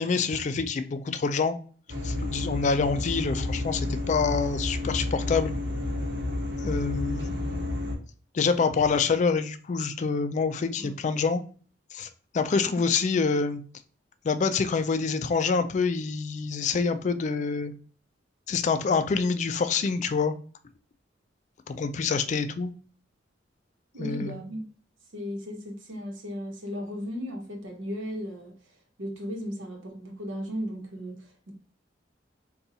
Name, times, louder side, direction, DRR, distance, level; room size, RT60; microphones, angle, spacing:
voice 1, 0.0-1.6 2.0-5.5 6.7-7.8 8.3-11.4 11.9-12.1 12.3-13.6 14.2-17.7 18.5-20.3 21.7-22.7 24.0-24.3, left 5 dB, 40° left, 0.3 m, -26 dB
sound 1, 1.9-7.9, left 2 dB, 70° right, 1.1 m, -30 dB
voice 2, 23.9-24.6 25.1-31.5, equal, 90° right, 0.9 m, -36 dB
4.0 x 2.3 x 2.6 m
head